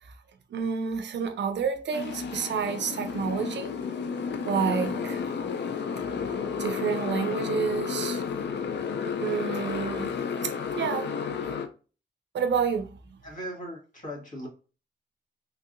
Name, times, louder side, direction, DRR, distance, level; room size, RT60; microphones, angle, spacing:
voice 1, 0.5-3.7 4.5-5.2 6.6-8.2 9.2-10.1 10.4-11.2 12.3-12.9, right 6 dB, 70° right, 0.4 m, -29 dB
Motorcycle, 1.9-11.7, left 6 dB, 65° left, 0.4 m, -32 dB
voice 2, 13.2-14.5, equal, 40° left, 1.5 m, -38 dB
3.3 x 2.6 x 2.5 m
cardioid pair, 85°, 19 cm